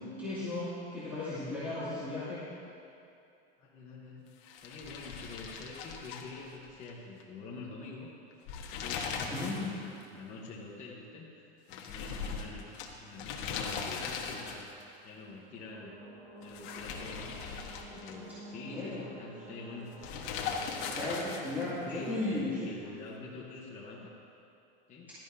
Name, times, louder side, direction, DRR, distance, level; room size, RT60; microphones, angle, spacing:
voice 1, 0.0-2.4 9.3-9.7 18.7-19.1 20.9-22.7, left 2 dB, 5° right, -13 dB, 2.5 m, -35 dB
voice 2, 3.6-4.3 4.6-8.1 8.7-12.7 13.0-14.7 15.0-16.0 16.4-17.3 17.9-19.9 21.1-24.1 24.9-25.1, left 3 dB, 25° left, -5 dB, 1.0 m, -46 dB
sound 1, 4.4-6.9 7.2-7.3 8.3-9.7 10.0-10.1 11.7-14.8 16.4-18.4 20.0-21.7, left 5 dB, 60° left, 1.2 m, -39 dB
sound 2, 15.6-22.3, right 1 dB, 85° right, 2.4 m, -50 dB
16.0 x 12.0 x 2.7 m, 2.6 s
supercardioid pair, 165°, 30 cm